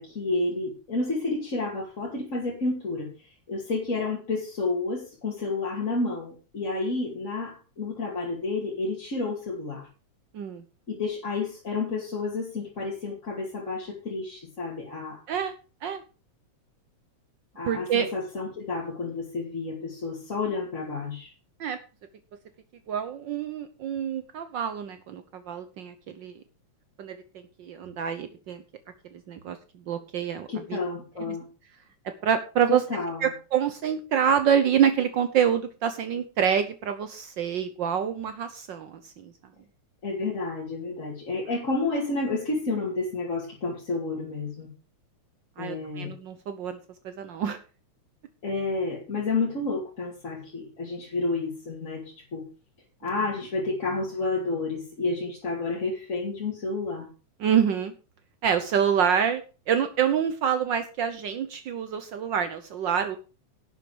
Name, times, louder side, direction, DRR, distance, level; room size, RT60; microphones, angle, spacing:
voice 1, 0.0-9.9 10.9-15.2 17.6-21.3 30.5-31.4 32.7-33.3 40.0-44.7 45.6-46.1 48.4-52.5 53.0-57.1, left 3 dB, 30° left, -4 dB, 2.6 m, -30 dB
voice 2, 17.6-18.1 21.6-21.8 22.9-26.3 27.0-27.2 27.6-28.6 29.1-29.6 29.9-30.8 31.2-31.3 32.2-32.8 33.2-39.3 45.6-46.8 47.0-47.6 57.4-57.9 58.4-59.4 59.7-63.2, right 8 dB, 80° right, 10 dB, 1.0 m, -26 dB
11.5 x 8.9 x 5.0 m, 0.34 s
omnidirectional pair, 3.3 m